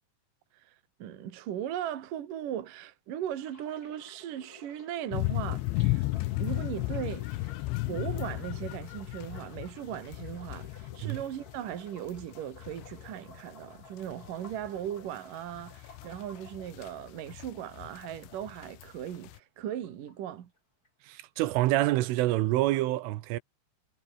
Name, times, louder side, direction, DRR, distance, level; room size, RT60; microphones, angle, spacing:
voice 1, 0.5-6.0 6.4-7.5 7.9-20.5, right 10 dB, 55° right, 2.7 m, -38 dB
sound 1, 3.4-19.4 19.7-20.6 20.8-21.2, left 2 dB, 15° left, 8.4 m, -55 dB
sound 2, 5.1-11.7 12.1-14.9 15.2-15.3 15.5-18.9 19.2-19.4, left 20 dB, 85° left, 2.9 m, -34 dB
voice 2, 21.1-23.4, right 16 dB, 80° right, 3.6 m, -27 dB
omnidirectional pair, 5.7 m